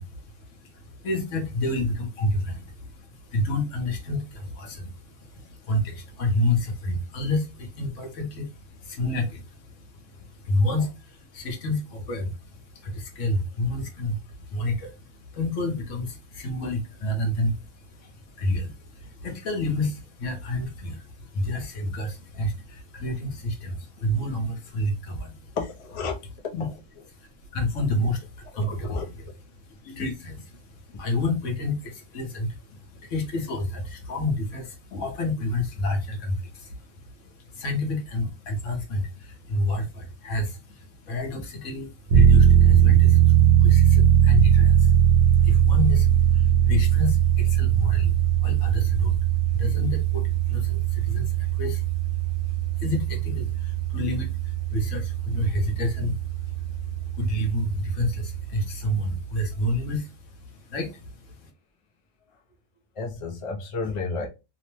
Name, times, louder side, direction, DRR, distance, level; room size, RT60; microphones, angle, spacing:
voice 1, 0.0-25.6 26.5-26.7 27.1-29.1 29.6-61.5, left 1 dB, 70° left, 1.1 m, -30 dB
voice 2, 25.5-26.2 26.6-26.7 28.6-29.1 30.9-31.0 63.0-64.3, left 4 dB, 45° left, 0.4 m, -31 dB
sound 1, 42.1-58.5, right 9 dB, 70° right, 0.9 m, -20 dB
3.0 x 2.0 x 3.0 m
omnidirectional pair, 1.4 m